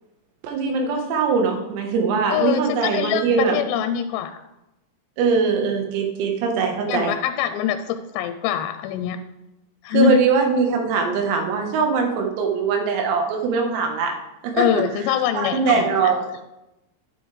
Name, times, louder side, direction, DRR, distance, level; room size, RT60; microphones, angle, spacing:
voice 1, 0.4-3.6 5.2-7.1 9.9-14.1 14.4-14.8 15.4-16.5, right 5 dB, 85° right, 3 dB, 4.2 m, -21 dB
voice 2, 2.3-4.3 6.9-9.2 9.8-10.2 14.5-16.2, left 10 dB, 90° left, 9 dB, 3.3 m, -24 dB
13.0 x 10.5 x 3.4 m, 0.94 s
omnidirectional pair, 6.0 m